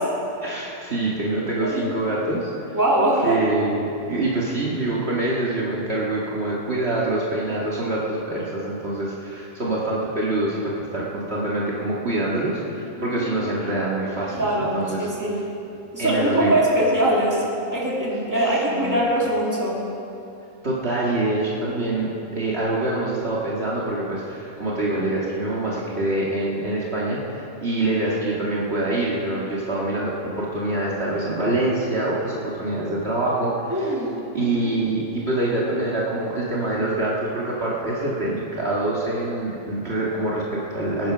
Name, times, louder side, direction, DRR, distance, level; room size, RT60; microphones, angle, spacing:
voice 1, 0.4-2.8 3.2-15.1 16.0-16.6 18.7-19.1 20.6-33.9 34.3-41.1, right 2 dB, 50° right, -6 dB, 2.2 m, -25 dB
voice 2, 2.7-3.4 13.0-13.2 14.3-15.4 15.9-17.4 17.7-19.8 33.7-34.7, right 1 dB, 10° right, -5 dB, 2.9 m, -22 dB
21.5 x 9.6 x 6.0 m, 2.8 s
omnidirectional pair, 1.5 m